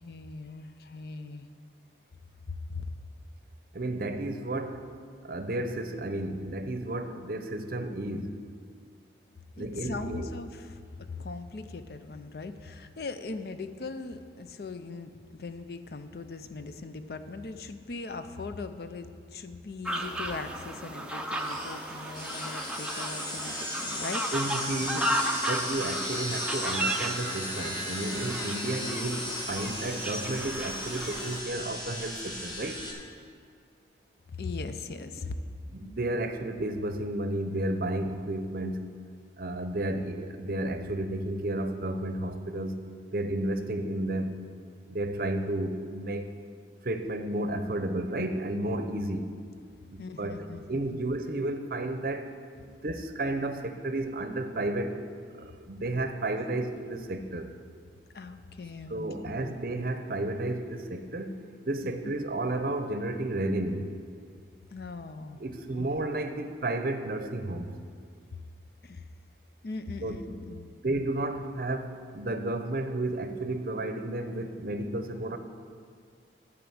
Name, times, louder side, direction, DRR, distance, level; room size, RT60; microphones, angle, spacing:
voice 1, 0.0-1.5 2.5-2.9 9.6-24.3 34.3-35.4 50.0-51.0 58.1-59.0 59.2-59.5 61.8-61.9 64.7-65.4 65.8-65.9 68.8-69.0 69.6-70.7, left 3 dB, 55° left, 10 dB, 0.5 m, -40 dB
voice 2, 3.7-4.8 5.2-8.3 9.6-10.3 24.3-25.2 25.5-32.8 35.1-35.2 35.7-38.8 39.4-42.7 43.1-44.3 44.9-46.3 46.8-49.3 49.9-52.3 52.6-55.0 55.4-57.5 58.9-61.3 61.6-63.9 65.4-67.7 70.0-70.2 70.8-75.4, right 1 dB, 50° right, 8 dB, 0.6 m, -32 dB
sound 1, 19.8-31.4, right 1 dB, 5° right, 0.5 m, -34 dB
sound 2, 21.3-32.9, left 1 dB, 25° left, 1.3 m, -36 dB
11.5 x 4.9 x 7.8 m, 2.1 s
head